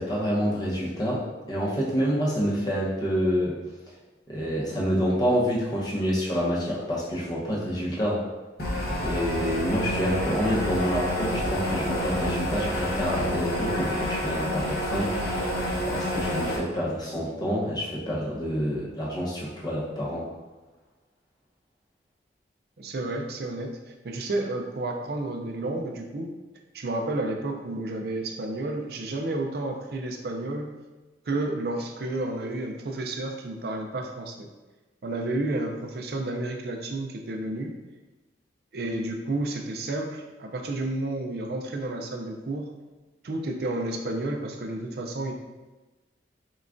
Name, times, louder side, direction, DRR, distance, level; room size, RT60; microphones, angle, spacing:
voice 1, 0.0-3.6 4.3-8.2 9.0-15.2 15.8-20.3, equal, 20° left, -5 dB, 0.8 m, -27 dB
sound 1, 8.6-16.6, equal, 55° left, 0.8 m, -28 dB
voice 2, 22.8-23.8 24.0-26.3 26.7-30.8 31.3-34.5 35.0-37.8 38.7-42.7 43.2-45.3, right 2 dB, 55° right, 3 dB, 0.4 m, -31 dB
5.8 x 2.3 x 2.5 m, 1.2 s
head